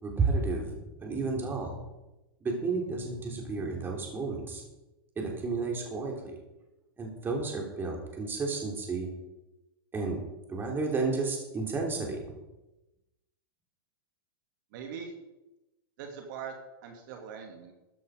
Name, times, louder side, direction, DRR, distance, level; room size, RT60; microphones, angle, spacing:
voice 1, 0.0-1.9 2.4-4.6 5.1-6.4 7.0-9.1 9.9-10.2 10.5-12.2, right 3 dB, 15° right, 1 dB, 3.5 m, -32 dB
voice 2, 14.7-15.1 16.0-16.5 16.8-17.7, right 7 dB, 55° right, 3 dB, 2.3 m, -41 dB
14.0 x 10.0 x 5.1 m, 0.99 s
hypercardioid pair, 135°, 12 cm